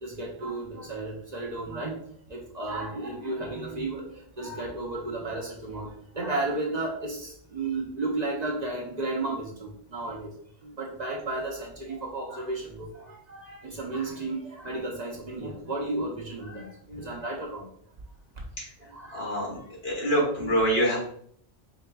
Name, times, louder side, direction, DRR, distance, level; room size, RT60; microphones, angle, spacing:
voice 1, 0.0-10.3 10.6-17.7 18.8-19.7 20.4-20.5, right 2 dB, 45° right, -1 dB, 0.7 m, -33 dB
voice 2, 19.1-21.0, equal, 65° left, -4 dB, 1.7 m, -26 dB
4.8 x 3.3 x 2.3 m, 0.63 s
omnidirectional pair, 1.1 m